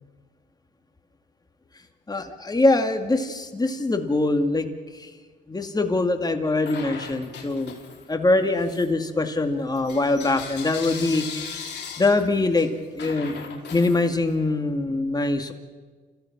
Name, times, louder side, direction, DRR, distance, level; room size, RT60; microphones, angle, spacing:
voice 1, 2.1-4.7 4.9-5.1 5.5-7.8 8.1-11.6 12.0-12.7 13.0-15.5, left 2 dB, 20° left, 5 dB, 2.2 m, -23 dB
Bell / Coin (dropping), 6.6-8.2 8.6-14.5, left 6 dB, 60° left, 4.4 m, -39 dB
29.5 x 16.0 x 6.0 m, 1.5 s
cardioid pair, 90°, 20 cm